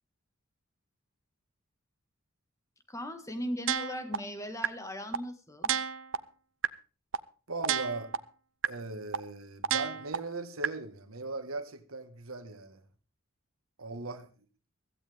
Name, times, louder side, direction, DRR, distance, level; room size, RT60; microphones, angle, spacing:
voice 1, 2.9-5.7, equal, 15° left, 1.8 m, -38 dB
sound 1, 3.7-4.2 4.6-4.7 5.1-5.2 5.6-6.2 6.6-6.7 7.1-7.2 7.6-8.2 8.6-8.7 9.1-9.2 9.6-10.2 10.6-10.7, right 8 dB, 65° right, 0.8 m, -29 dB
voice 2, 7.5-8.1 8.7-12.8 13.8-14.3, right 3 dB, 85° right, 1.7 m, -39 dB
16.0 x 15.0 x 3.6 m
head